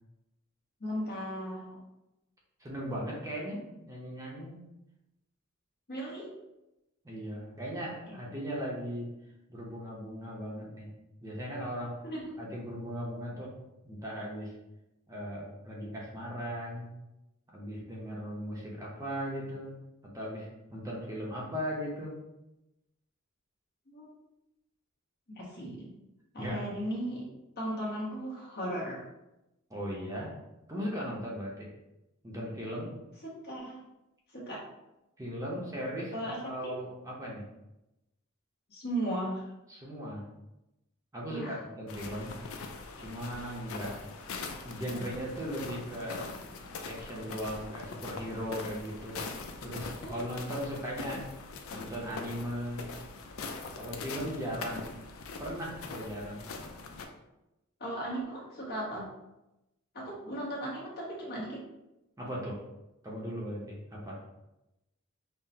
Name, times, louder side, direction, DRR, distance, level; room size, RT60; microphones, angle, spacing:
voice 1, 0.8-1.8 5.9-6.3 8.1-8.2 12.0-12.4 23.9-24.1 25.3-25.9 26.3-27.2 27.6-29.0 33.2-33.8 34.3-34.6 36.1-36.7 38.7-39.5 41.3-41.6 50.0-50.2 57.8-59.1 59.9-61.6, right 1 dB, 50° left, -4 dB, 1.1 m, -36 dB
voice 2, 2.6-4.6 7.0-9.1 9.5-10.9 11.2-12.0 12.4-13.5 13.8-14.5 15.1-16.9 17.5-19.7 20.1-22.2 26.4-26.7 29.7-30.3 30.7-31.7 32.2-32.9 35.2-37.4 39.7-40.2 41.1-42.4 43.0-43.9 44.6-46.3 46.8-51.3 51.7-52.9 53.8-55.0 55.4-56.4 62.2-62.6 63.0-64.2, equal, 15° right, -4 dB, 0.7 m, -38 dB
sound 1, 41.9-57.1, left 4 dB, 70° left, 0.4 m, -42 dB
5.6 x 2.1 x 2.7 m, 0.93 s
head